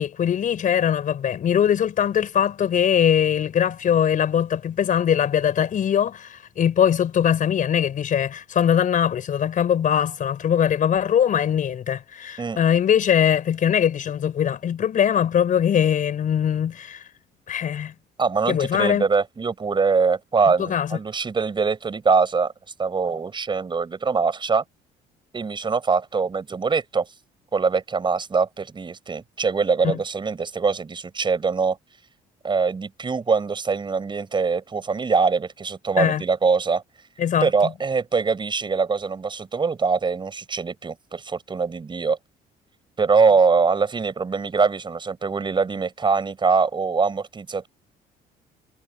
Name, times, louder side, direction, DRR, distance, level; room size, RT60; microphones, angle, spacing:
voice 1, 0.0-17.0 17.5-17.9 18.5-19.1 20.6-20.9 29.8-30.0 36.0-36.2 37.2-37.5, left 9 dB, 50° left, 5.3 m, -21 dB
voice 2, 18.2-22.5 22.8-24.6 25.3-27.1 27.5-31.8 32.4-36.8 37.4-42.2 43.0-47.7, right 5 dB, 30° right, 5.7 m, -23 dB
cardioid pair, 110°, 17 cm